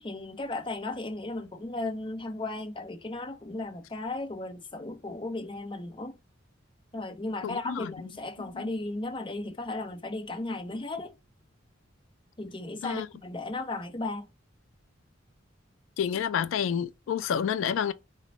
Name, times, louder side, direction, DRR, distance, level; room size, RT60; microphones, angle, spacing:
voice 1, 0.0-6.2 6.9-11.1 12.4-14.2, left 2 dB, 25° left, 0.6 m, -35 dB
voice 2, 7.4-7.9 8.5-8.7 12.8-13.1 16.0-17.9, left 8 dB, 90° left, 0.3 m, -29 dB
4.1 x 2.2 x 2.8 m
head